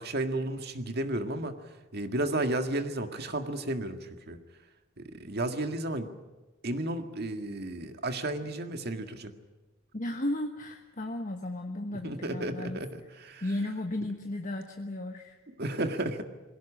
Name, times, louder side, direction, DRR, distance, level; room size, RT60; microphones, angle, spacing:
voice 1, 0.0-1.6 1.9-4.4 5.0-6.1 6.6-9.3 12.0-13.4 15.5-16.3, right 1 dB, 50° right, 7 dB, 1.8 m, -33 dB
voice 2, 9.9-12.8 13.4-15.3, left 1 dB, 40° left, 4 dB, 1.3 m, -34 dB
21.5 x 17.0 x 10.0 m, 1.2 s
head